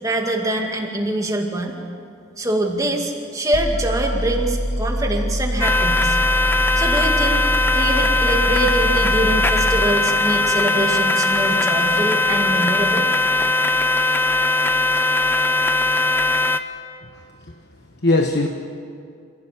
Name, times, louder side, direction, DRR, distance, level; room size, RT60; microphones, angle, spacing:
voice 1, 0.0-1.8 2.4-6.2 6.8-7.4 7.7-13.1, right 1 dB, 15° right, 1 dB, 2.2 m, -24 dB
basscapes Eclettricalbsfx, 3.5-9.9, equal, 90° left, 2.1 m, -24 dB
sound 1, 5.6-16.6, left 2 dB, 10° left, 0.6 m, -19 dB
voice 2, 17.0-17.5 18.0-18.5, left 2 dB, 55° left, 4 dB, 1.2 m, -21 dB
28.0 x 16.0 x 8.6 m, 2.4 s
head